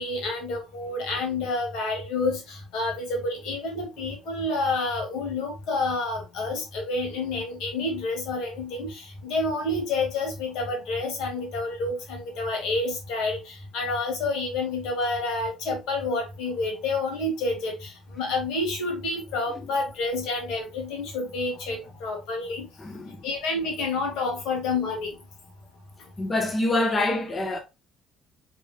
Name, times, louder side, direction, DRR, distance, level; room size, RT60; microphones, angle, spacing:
voice 1, 0.0-22.7 23.2-25.1, left 2 dB, 80° left, 2.0 m, -29 dB
voice 2, 22.8-23.2 26.2-27.6, left 2 dB, 30° left, 1.0 m, -26 dB
5.2 x 3.7 x 2.3 m
supercardioid pair, 70°, 0 cm